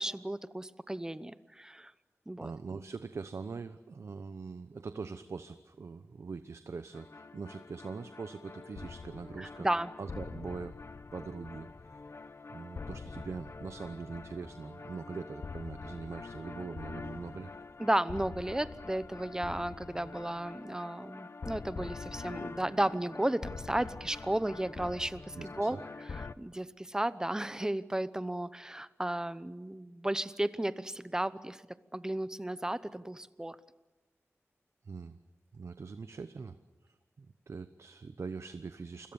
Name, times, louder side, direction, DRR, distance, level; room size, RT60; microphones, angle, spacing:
voice 1, 0.0-1.9 2.3-2.5 9.4-9.9 17.8-31.6 31.9-33.6, right 1 dB, 15° right, 15 dB, 0.9 m, -34 dB
voice 2, 2.3-9.7 10.0-10.8 11.1-12.0 12.5-17.5 25.3-25.8 34.8-35.2 35.5-36.6 36.8-39.1, right 4 dB, 65° right, 11 dB, 0.9 m, -42 dB
sound 1, 6.9-26.3, left 4 dB, 55° left, 0.8 m, -45 dB
29.0 x 22.0 x 7.1 m, 1.1 s
wide cardioid pair, 110°, 5 cm